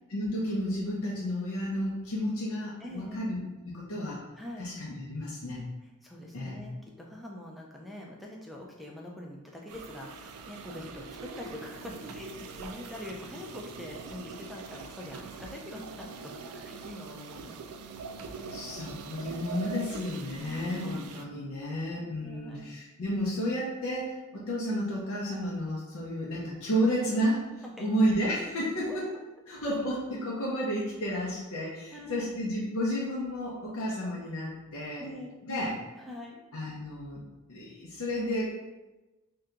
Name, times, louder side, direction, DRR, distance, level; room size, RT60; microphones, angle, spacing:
voice 1, 0.1-3.4 3.6-4.2 4.6-5.6 6.3-6.6 18.5-27.4 27.8-29.1 29.5-35.0 35.5-35.7 36.5-37.2 37.5-38.5, equal, 70° left, -5 dB, 0.6 m, -31 dB
voice 2, 2.8-3.2 4.4-4.7 6.0-17.6 18.4-18.6 20.4-21.0 22.2-22.7 27.8-27.9 28.9-29.0 29.6-29.7 31.9-32.3 35.0-35.4 35.9-36.4, left 1 dB, ahead, -2 dB, 0.3 m, -44 dB
sound 1, 9.7-21.2, right 4 dB, 80° right, 0.3 m, -43 dB
2.8 x 2.2 x 3.6 m, 1.1 s
head